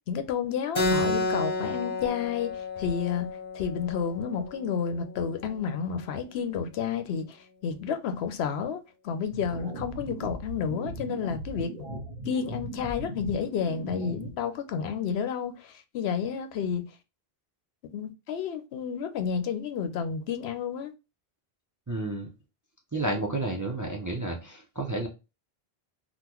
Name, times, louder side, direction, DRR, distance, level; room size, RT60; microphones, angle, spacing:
voice 1, 0.1-3.3 3.5-11.7 12.3-16.8 17.9-20.9, left 7 dB, 75° left, 0.8 m, -31 dB
Keyboard (musical), 0.7-5.8, left 2 dB, 30° left, 0.9 m, -31 dB
sound 1, 9.3-14.3, right 1 dB, 55° right, 1.2 m, -38 dB
voice 2, 21.9-22.3 22.9-25.1, right 2 dB, 25° right, 0.4 m, -31 dB
3.7 x 2.2 x 2.9 m
omnidirectional pair, 1.1 m